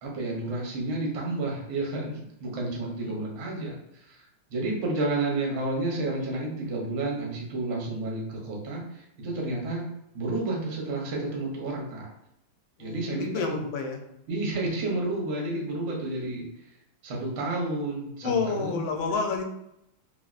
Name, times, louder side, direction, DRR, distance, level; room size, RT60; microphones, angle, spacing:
voice 1, 0.0-4.2 4.5-9.9 10.1-12.1 12.8-13.6 14.3-16.5 17.0-18.8, right 2 dB, 60° right, -2 dB, 0.7 m, -31 dB
voice 2, 12.8-14.0 18.2-19.4, left 5 dB, 80° left, 3 dB, 1.3 m, -29 dB
3.3 x 2.0 x 2.4 m, 0.82 s
omnidirectional pair, 2.1 m